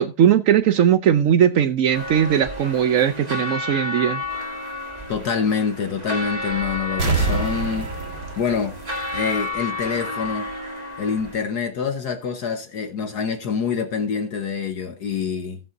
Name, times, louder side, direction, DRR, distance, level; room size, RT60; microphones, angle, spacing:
voice 1, 0.0-4.2, right 9 dB, 80° right, 0.7 m, -19 dB
sound 1, 1.9-11.4, left 2 dB, 20° right, 2.1 m, -31 dB
voice 2, 5.1-7.9 8.4-8.8 9.1-10.5 11.0-15.6, left 6 dB, 55° left, 1.5 m, -26 dB
sound 2, 7.0-9.6 9.9-10.0, right 3 dB, 60° right, 2.4 m, -26 dB
16.5 x 7.8 x 2.7 m
omnidirectional pair, 2.2 m